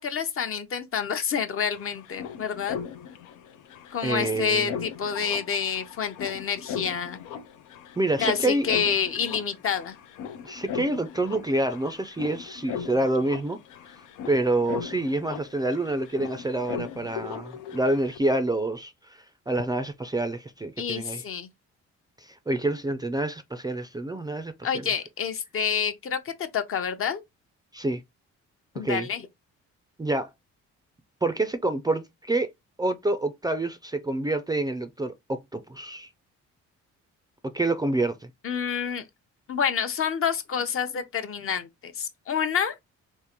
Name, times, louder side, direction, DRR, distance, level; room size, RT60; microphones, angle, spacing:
voice 1, 0.0-2.8 3.9-7.2 8.2-10.0 20.8-21.5 24.6-27.2 28.7-29.3 38.4-39.1 39.5-42.8, left 7 dB, 45° left, 0.7 m, -28 dB
sound 1, 1.5-18.2, left 7 dB, 90° left, 0.6 m, -39 dB
voice 2, 4.0-4.7 8.0-8.7 10.4-13.6 14.3-21.2 22.2-24.8 27.7-28.0 28.8-29.1 30.0-30.3 31.2-32.5 32.8-36.1 37.4-38.3, right 2 dB, 15° right, 0.4 m, -27 dB
3.7 x 2.5 x 2.9 m
cardioid pair, 90°, 30 cm